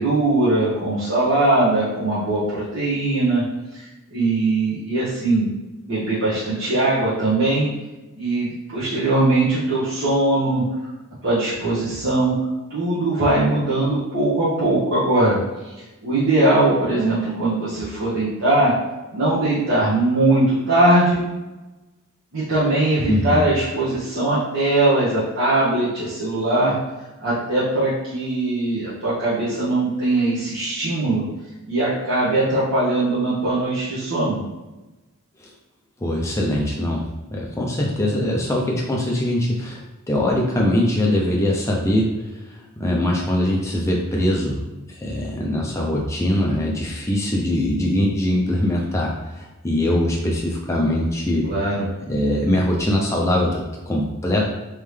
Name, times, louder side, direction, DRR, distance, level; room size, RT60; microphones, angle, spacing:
voice 1, 0.0-3.4 3.7-3.8 4.1-5.5 5.8-7.7 8.1-10.6 11.2-12.3 12.7-15.4 16.0-18.7 19.1-21.2 22.3-26.7 27.2-31.2 31.6-34.4 51.4-51.9, right 2 dB, 60° right, -11 dB, 1.1 m, -20 dB
voice 2, 23.1-23.4 35.4-35.5 36.0-42.1 42.5-51.5 52.1-54.4, left 1 dB, 15° left, -2 dB, 0.5 m, -22 dB
3.5 x 3.2 x 3.2 m, 1.1 s
head